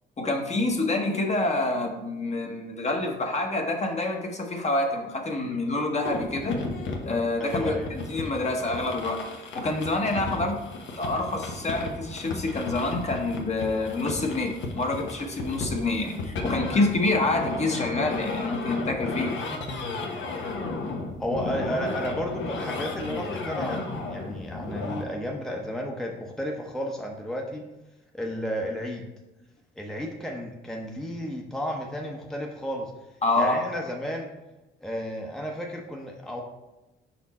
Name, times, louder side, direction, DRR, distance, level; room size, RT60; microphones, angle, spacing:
voice 1, 0.2-6.6 7.0-10.6 11.0-19.5 33.2-33.6, left 2 dB, 35° left, 2 dB, 1.1 m, -27 dB
sound 1, 6.1-25.0, left 3 dB, 70° left, 1.0 m, -34 dB
voice 2, 7.4-7.9 21.2-27.7 28.1-29.0 29.8-32.9 33.4-34.3 34.8-36.4, equal, ahead, 0 dB, 0.7 m, -32 dB
5.3 x 4.3 x 4.1 m, 0.99 s
cardioid pair, 90°, 20 cm